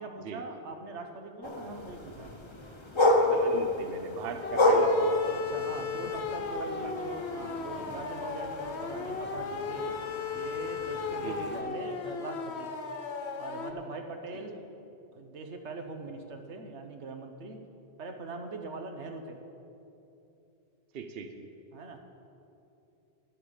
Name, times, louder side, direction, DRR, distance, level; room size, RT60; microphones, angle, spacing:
voice 1, 0.0-2.3 5.3-10.0 10.3-12.7 13.3-14.6 15.1-17.6 18.0-19.4 21.7-22.0, right 3 dB, 85° right, 5 dB, 1.3 m, -41 dB
sound 1, 1.4-11.6, left 2 dB, 25° left, 1.0 m, -30 dB
voice 2, 3.2-5.3 6.6-6.9 11.2-11.6 20.9-21.5, right 5 dB, 60° right, 7 dB, 0.9 m, -40 dB
sound 2, 4.4-13.7, left 5 dB, 70° left, 1.1 m, -36 dB
11.0 x 8.3 x 7.2 m, 2.9 s
omnidirectional pair, 1.1 m